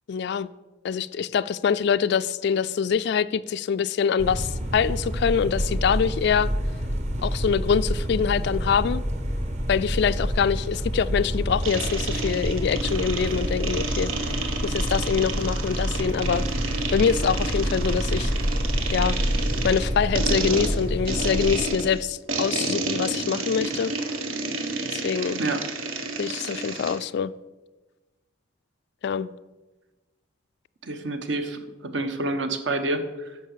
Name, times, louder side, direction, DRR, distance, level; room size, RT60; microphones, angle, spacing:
voice 1, 0.1-0.5 0.8-6.5 7.2-9.0 9.7-14.1 14.6-16.5 16.9-18.3 18.9-19.2 19.6-23.9 24.9-25.4 26.2-27.3 29.0-29.3, left 7 dB, 55° left, 14 dB, 0.3 m, -24 dB
sound 1, 4.2-21.6, equal, 35° right, 1.1 m, -28 dB
sound 2, 11.6-27.0, right 3 dB, 80° right, 1.4 m, -31 dB
voice 2, 30.8-33.4, right 2 dB, 60° right, 9 dB, 1.1 m, -28 dB
11.0 x 6.8 x 6.7 m, 1.2 s
head